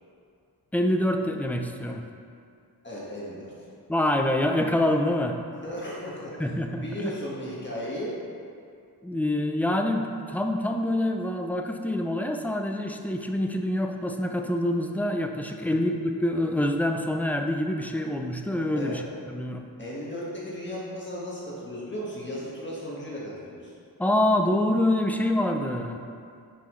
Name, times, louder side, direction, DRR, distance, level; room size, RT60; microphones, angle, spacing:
voice 1, 0.7-2.0 3.9-5.4 6.4-7.1 9.0-19.0 19.3-19.6 24.0-26.0, left 1 dB, 5° left, 3 dB, 0.5 m, -26 dB
voice 2, 2.8-3.7 5.6-6.3 6.7-8.2 15.6-15.9 18.7-19.0 19.8-23.7, equal, 30° left, -7 dB, 1.6 m, -35 dB
9.9 x 5.9 x 3.2 m, 2.4 s
wide cardioid pair, 120°, 39 cm